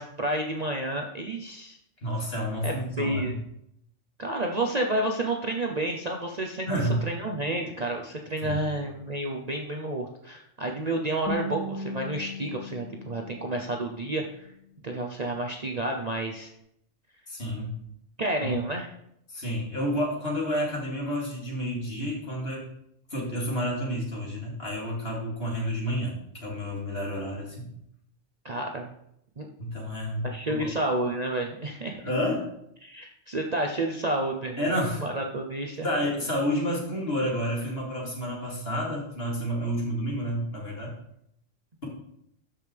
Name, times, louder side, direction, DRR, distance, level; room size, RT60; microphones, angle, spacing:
voice 1, 0.0-1.8 2.6-3.3 4.2-14.5 14.8-16.5 18.2-18.9 28.4-28.9 29.4-29.5 30.2-32.0 32.8-34.7 35.0-35.9, right 1 dB, 40° right, 1 dB, 0.7 m, -30 dB
voice 2, 2.0-3.3 6.7-7.0 8.4-8.7 17.3-17.7 18.4-18.5 19.3-22.6 23.1-27.7 29.6-30.6 32.0-32.5 34.6-35.0 35.8-40.9, equal, 50° left, -3 dB, 2.6 m, -30 dB
Guitar, 11.3-14.3, equal, 15° left, 1.1 m, -37 dB
12.5 x 5.3 x 3.4 m, 0.75 s
omnidirectional pair, 1.3 m